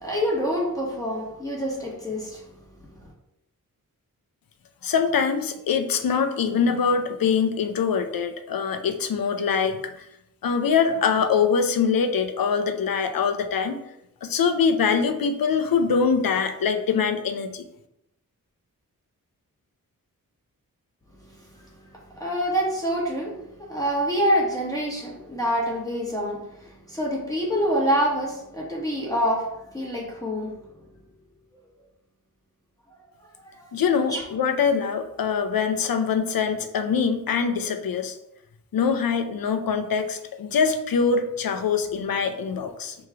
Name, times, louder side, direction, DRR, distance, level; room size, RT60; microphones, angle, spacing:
voice 1, 0.0-2.4 22.1-23.3 23.7-29.5 29.7-30.5 33.4-33.5 34.1-34.2, equal, 10° left, -4 dB, 1.2 m, -26 dB
voice 2, 4.8-9.9 10.4-13.8 14.2-17.6 33.7-38.2 38.7-43.0, left 6 dB, 80° left, 7 dB, 0.6 m, -23 dB
3.5 x 3.1 x 4.6 m, 0.82 s
wide cardioid pair, 105°, 34 cm